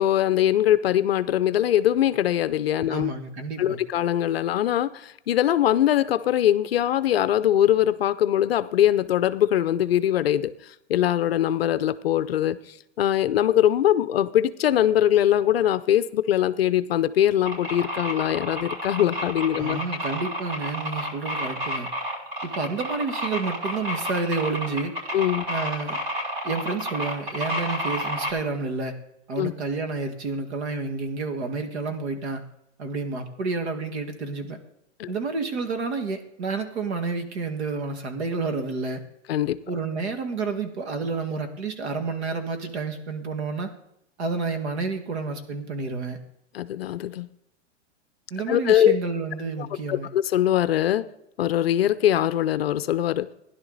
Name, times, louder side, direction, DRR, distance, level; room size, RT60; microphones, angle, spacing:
voice 1, 0.0-3.1 3.6-12.6 13.0-19.8 25.1-25.5 29.4-29.5 35.0-35.1 39.3-39.6 46.5-47.3 48.5-49.0 49.6-51.1 51.4-53.3, left 11 dB, 55° left, 13 dB, 0.6 m, -22 dB
voice 2, 2.9-3.8 19.6-21.9 22.4-24.9 25.5-26.0 26.4-28.9 29.3-32.4 32.8-34.6 35.1-39.0 39.7-43.7 44.2-46.2 48.3-50.1, right 4 dB, 60° right, 7 dB, 2.0 m, -30 dB
sound 1, 17.5-28.3, equal, 45° right, 6.1 m, -30 dB
16.0 x 11.0 x 4.0 m, 0.80 s
supercardioid pair, 175°, 37 cm